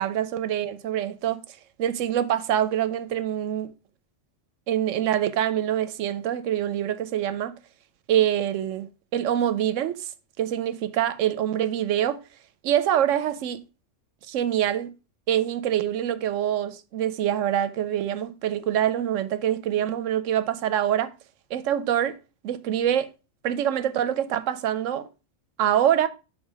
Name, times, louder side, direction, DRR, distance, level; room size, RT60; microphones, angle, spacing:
voice 1, 0.0-1.4 1.8-3.7 4.7-7.5 8.1-10.1 10.4-12.2 12.6-13.6 14.3-14.9 15.3-21.1 21.5-22.2 22.4-23.1 23.4-25.1 25.6-26.1, right 10 dB, 85° right, 1.0 m, -25 dB
7.2 x 3.8 x 4.7 m
omnidirectional pair, 1.3 m